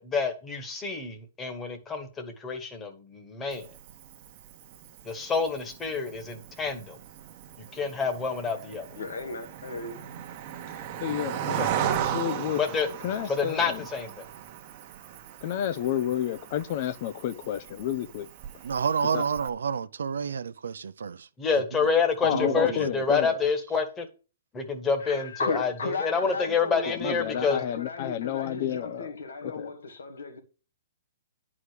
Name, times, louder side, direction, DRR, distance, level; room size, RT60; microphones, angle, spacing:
voice 1, 0.0-3.7 5.0-7.0 7.7-8.8 11.5-11.7 12.5-12.9 13.3-14.2 21.4-24.1 24.5-27.6, left 5 dB, 15° left, 1.6 m, -28 dB
Cricket, 3.5-19.5, right 9 dB, 35° right, 1.2 m, -37 dB
voice 2, 9.0-10.0 25.0-30.4, left 3 dB, 85° left, 2.2 m, -35 dB
voice 3, 11.0-12.6 13.0-13.9 15.4-18.3 19.1-19.2 22.2-23.4 26.9-29.1 29.4-29.7, left 11 dB, 40° left, 0.7 m, -30 dB
voice 4, 18.6-21.3 21.8-21.9 22.2-22.9, right 6 dB, 85° right, 0.6 m, -30 dB
10.0 x 4.9 x 6.6 m
hypercardioid pair, 155°, 0 cm